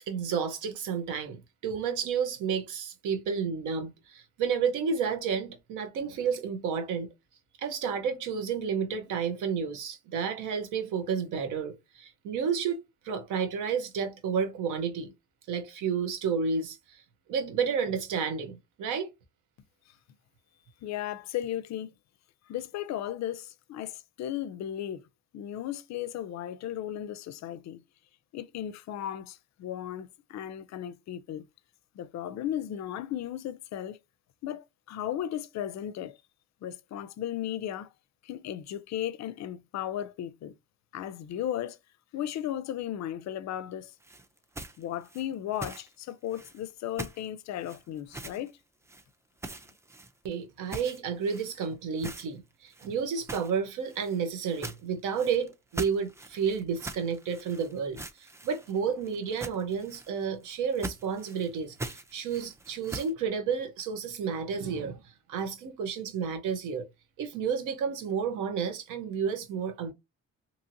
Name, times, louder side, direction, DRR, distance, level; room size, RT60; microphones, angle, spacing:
voice 1, 0.0-7.1 7.6-12.8 13.0-15.1 15.5-17.0 17.3-19.1 50.2-58.0 58.4-65.0 65.3-66.9 67.2-69.9, right 6 dB, 90° right, 0.8 m, -31 dB
voice 2, 20.8-21.9 22.5-25.0 25.3-27.8 28.3-31.5 32.0-34.0 34.4-36.2 36.6-37.9 38.2-40.5 40.9-41.8 42.1-43.9 44.8-48.5, left 11 dB, 65° left, 0.4 m, -35 dB
sound 1, 44.0-45.9 46.3-46.7 47.0-47.3 47.6-48.5 48.9-49.0 49.4-50.3 50.7-51.7 52.0-52.3 52.7-63.1, right 2 dB, 10° right, 0.3 m, -42 dB
2.8 x 2.7 x 2.5 m
cardioid pair, 90°, 30 cm